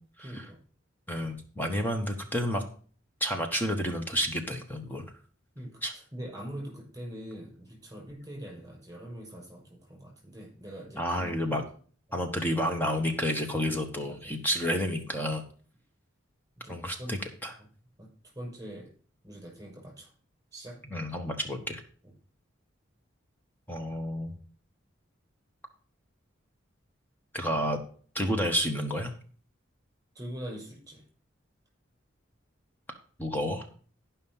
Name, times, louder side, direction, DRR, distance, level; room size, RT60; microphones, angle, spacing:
voice 1, 0.2-0.6 5.5-11.7 12.1-12.2 14.1-14.3 16.6-17.2 18.0-18.1 18.3-18.9 19.2-20.1 20.5-20.8 30.1-31.0, equal, 15° right, -2 dB, 6.2 m, -43 dB
voice 2, 1.1-2.6 3.2-5.0 5.8-5.9 11.0-11.6 12.1-15.4 16.7-17.5 20.9-21.8 23.7-24.3 27.3-27.8 28.1-29.1 33.2-33.6, equal, 10° left, 4 dB, 1.1 m, -30 dB
11.5 x 5.7 x 5.5 m, 0.44 s
head